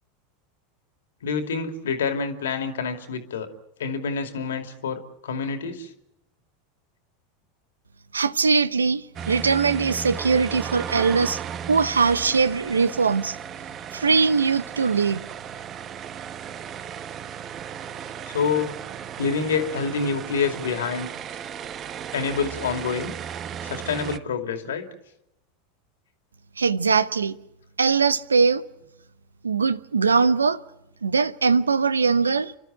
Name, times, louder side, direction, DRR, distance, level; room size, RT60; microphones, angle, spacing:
voice 1, 1.2-3.5 3.8-5.9 17.9-18.7 19.2-21.1 22.1-23.1 23.6-24.9, left 5 dB, 75° left, 2.5 m, -27 dB
voice 2, 8.1-11.4 11.7-13.4 13.9-15.2 26.6-27.3 27.8-28.6 29.4-30.6 31.0-32.5, right 5 dB, 85° right, 0.8 m, -21 dB
sound 1, 9.2-24.2, right 8 dB, 35° right, 1.1 m, -35 dB
29.5 x 12.5 x 10.0 m
hypercardioid pair, 85°, 0 cm